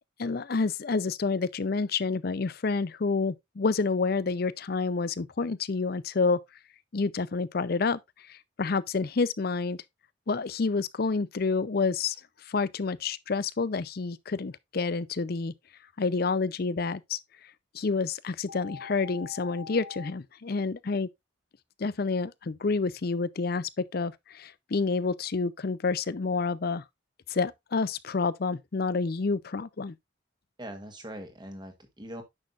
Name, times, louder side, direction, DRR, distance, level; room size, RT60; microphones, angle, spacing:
voice 1, 0.2-6.4 6.9-9.8 10.3-12.2 12.5-15.5 16.0-17.2 17.7-21.1 21.8-26.8 27.3-29.9, left 4 dB, 50° left, 0.5 m, -29 dB
sound 1, 18.5-20.1, left 6 dB, 70° left, 1.1 m, -43 dB
voice 2, 30.6-32.2, right 1 dB, 20° right, 1.4 m, -41 dB
9.7 x 6.5 x 2.4 m
head